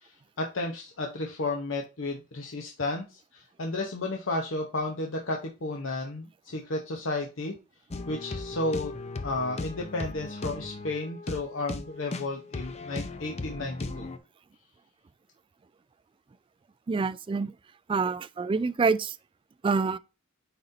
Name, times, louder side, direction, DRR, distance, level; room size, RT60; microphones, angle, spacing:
voice 1, 0.0-7.5 8.1-8.9 9.2-14.1, left 2 dB, 75° left, 0.8 m, -33 dB
sound 1, 7.9-14.2, left 3 dB, 35° left, 0.6 m, -37 dB
voice 2, 16.9-17.5 17.9-19.2 19.6-20.0, right 4 dB, 25° right, 0.3 m, -26 dB
9.1 x 4.1 x 2.7 m
head